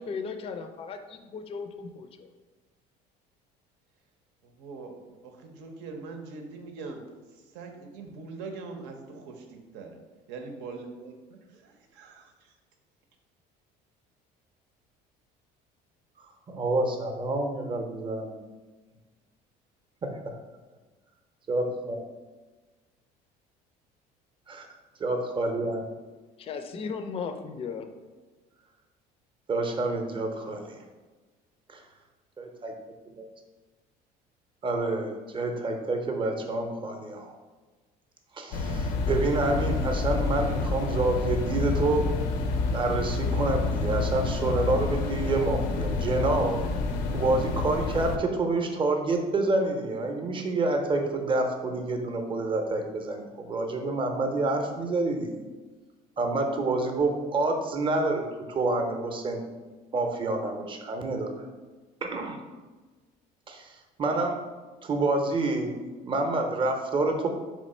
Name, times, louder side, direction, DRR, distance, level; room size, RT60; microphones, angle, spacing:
voice 1, 0.0-2.3 26.4-27.9, left 5 dB, 30° left, 8 dB, 0.4 m, -36 dB
voice 2, 4.4-10.0 10.3-12.6, right 4 dB, 80° right, 4 dB, 0.7 m, -42 dB
voice 3, 16.5-18.2 20.0-20.3 21.5-22.0 25.0-25.8 29.5-30.8 31.7-31.8 32.4-32.7 33.0-33.1 34.6-37.4 38.3-42.1 42.7-46.6 47.1-55.4 56.2-59.4 59.9-61.5 62.0-62.4 63.5-64.5 64.8-67.3, right 2 dB, 30° right, 4 dB, 0.6 m, -28 dB
sound 1, 38.5-48.2, left 3 dB, 80° left, 0.5 m, -28 dB
3.7 x 3.1 x 4.2 m, 1.3 s
cardioid pair, 115°, 18 cm